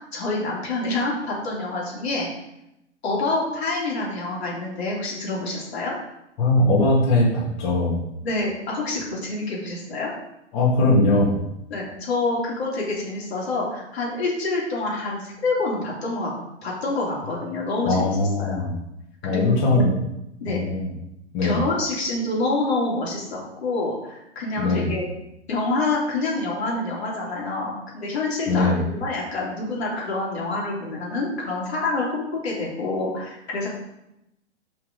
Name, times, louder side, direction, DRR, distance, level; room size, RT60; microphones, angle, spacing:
voice 1, 0.1-2.3 3.0-5.9 8.2-10.1 11.7-18.6 19.3-19.5 20.4-20.6 21.4-25.0 25.5-33.7, left 2 dB, 60° left, -4 dB, 3.0 m, -27 dB
voice 2, 6.4-8.0 10.5-11.4 17.9-18.7 19.2-19.9 20.5-20.9 21.3-21.6 24.6-24.9 28.5-28.8, left 2 dB, 40° left, -6 dB, 2.4 m, -20 dB
6.0 x 5.7 x 5.2 m, 0.86 s
figure-of-eight pair, 110°, 35 cm